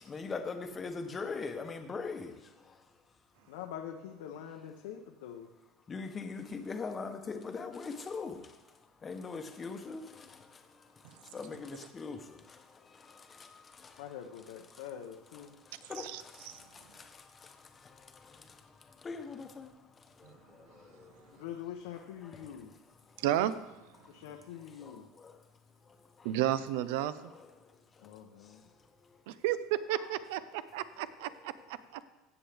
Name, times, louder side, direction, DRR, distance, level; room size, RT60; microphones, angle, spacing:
voice 1, 0.1-2.3 5.9-8.4 9.0-10.0 11.3-12.2 15.9-16.1 19.0-19.7, left 4 dB, 20° left, 0.9 m, -39 dB
voice 2, 3.5-5.5 14.0-15.6 21.3-22.8 24.1-25.1 28.0-28.6, left 9 dB, 90° left, 0.8 m, -44 dB
voice 3, 16.0-16.6 20.2-20.3 23.2-23.5 26.2-27.1 29.3-32.0, right 12 dB, 80° right, 0.6 m, -33 dB
15.5 x 7.0 x 3.5 m
cardioid pair, 145°, 0 cm